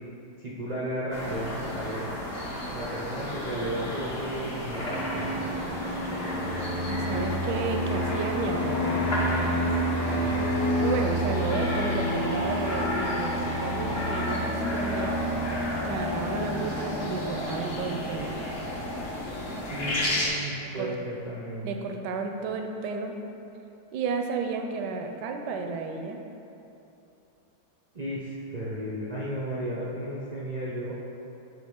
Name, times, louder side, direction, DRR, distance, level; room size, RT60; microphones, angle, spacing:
voice 1, 0.4-2.1 2.7-5.6 10.1-10.5 19.7-21.8 27.9-31.0, right 1 dB, 65° right, -6 dB, 0.4 m, -34 dB
sound 1, 1.1-20.3, left 1 dB, 40° left, 1.1 m, -34 dB
Fixed-wing aircraft airplane, 4.8-20.0, equal, 75° left, 1.9 m, -30 dB
voice 2, 6.9-8.9 10.3-10.5 10.8-15.2 15.8-18.3 20.8-20.9 21.6-23.1 23.9-26.2, right 4 dB, 85° right, 4 dB, 1.2 m, -32 dB
10.0 x 3.4 x 3.7 m, 2.9 s
omnidirectional pair, 1.8 m